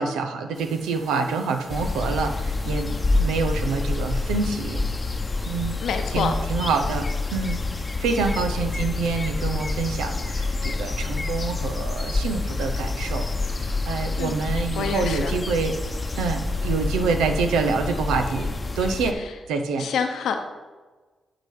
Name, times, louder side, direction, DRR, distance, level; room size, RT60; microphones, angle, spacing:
voice 1, 0.0-4.8 5.5-5.8 6.1-7.6 8.0-13.3 13.6-15.7 16.1-19.2 19.5-19.9, right 4 dB, 85° right, 6 dB, 0.7 m, -26 dB
sound 1, 0.5-16.9, right 2 dB, 65° right, 1.7 m, -49 dB
sound 2, 1.7-19.1, left 3 dB, 35° left, 0.8 m, -27 dB
voice 2, 5.8-6.4 14.2-14.4 14.8-15.3 19.1-19.3 19.8-20.4, left 6 dB, 80° left, 6 dB, 0.8 m, -27 dB
10.5 x 4.0 x 5.3 m, 1.3 s
supercardioid pair, 45°, 0 cm